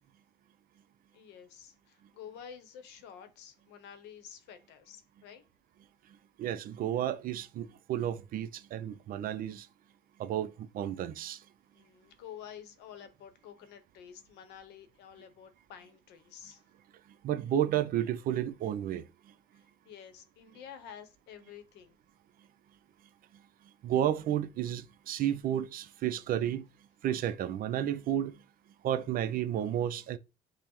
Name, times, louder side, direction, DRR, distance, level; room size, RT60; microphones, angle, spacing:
voice 1, 1.1-5.4 11.7-16.6 19.5-22.0, left 8 dB, 85° left, 0.8 m, -50 dB
voice 2, 6.4-9.7 10.2-11.4 17.2-19.0 23.8-26.7 27.0-28.3 28.8-30.2, right 11 dB, 60° right, 0.4 m, -32 dB
5.3 x 2.1 x 2.9 m
cardioid pair, 110°, 17 cm